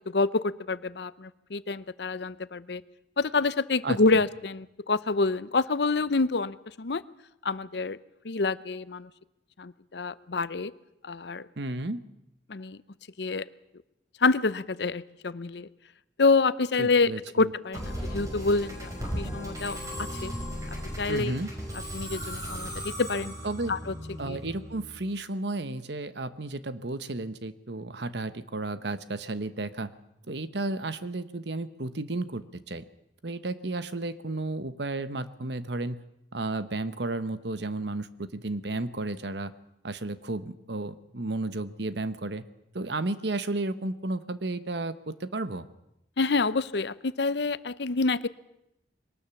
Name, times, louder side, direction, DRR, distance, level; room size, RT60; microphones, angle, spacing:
voice 1, 0.1-2.8 3.2-7.0 7.4-8.0 8.2-9.1 9.6-10.7 11.0-11.4 12.5-12.8 13.2-13.4 14.2-15.7 16.2-17.1 17.4-18.9 19.2-19.8 20.2-20.3 21.0-21.4 21.9-23.3 23.7-23.9 24.3-24.4 46.2-48.3, left 3 dB, 65° left, 17 dB, 0.7 m, -27 dB
voice 2, 11.6-12.0 16.8-17.5 21.1-21.5 23.4-23.8 24.2-29.9 30.3-32.8 33.2-36.0 36.3-39.5 39.8-42.4 42.7-45.7, right 2 dB, 70° right, 13 dB, 1.1 m, -33 dB
Musical instrument, 17.7-25.1, equal, 20° right, 5.6 m, -36 dB
22.0 x 19.0 x 7.2 m, 0.85 s
head